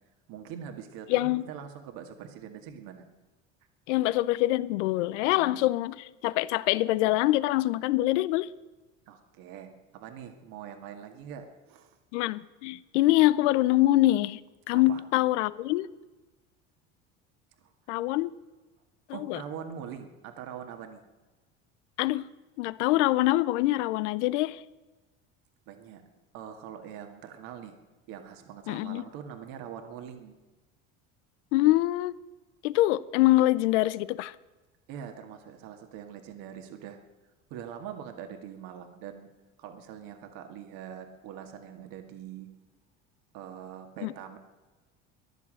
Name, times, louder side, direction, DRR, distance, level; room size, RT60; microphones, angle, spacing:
voice 1, 0.3-3.1 5.2-5.7 9.1-12.0 14.7-15.0 17.6-18.0 19.1-21.0 25.7-27.8 28.1-30.3 34.9-37.0 37.5-39.3 39.6-42.5 43.3-44.4, right 8 dB, 70° right, 2.1 m, -43 dB
voice 2, 1.1-1.4 3.9-8.5 12.1-14.4 14.7-15.9 17.9-18.3 19.3-19.4 22.0-22.2 22.6-24.6 28.7-29.0 31.5-32.1 32.6-34.3 44.0-44.1, left 17 dB, 85° left, 0.6 m, -24 dB
14.5 x 11.0 x 7.6 m
supercardioid pair, 85°, 35 cm